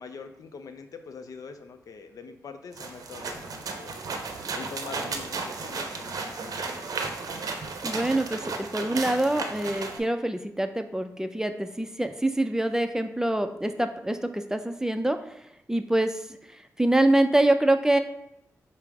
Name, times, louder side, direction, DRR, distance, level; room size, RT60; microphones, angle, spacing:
voice 1, 0.0-4.0 4.5-6.9, left 5 dB, 65° left, 8 dB, 0.4 m, -43 dB
sound 1, 2.7-10.0, right 4 dB, 70° right, 0.6 m, -34 dB
voice 2, 7.8-15.2 15.7-16.2 16.5-18.0, right 1 dB, 10° right, 8 dB, 0.4 m, -25 dB
5.4 x 2.0 x 4.7 m, 0.80 s
cardioid pair, 45°, 6 cm